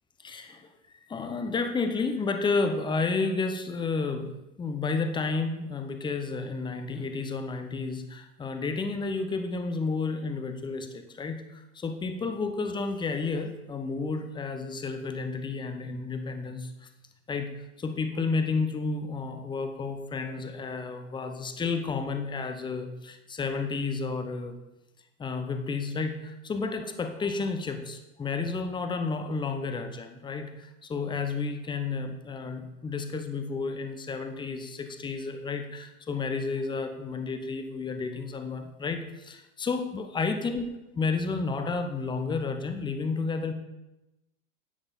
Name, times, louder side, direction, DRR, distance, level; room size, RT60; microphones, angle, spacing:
voice 1, 0.2-0.7 1.1-4.3 4.6-16.9 17.3-24.6 25.2-40.7 40.9-43.5, left 4 dB, 10° left, 7 dB, 0.8 m, -31 dB
11.0 x 7.8 x 3.9 m, 0.96 s
hypercardioid pair, 110°, 43 cm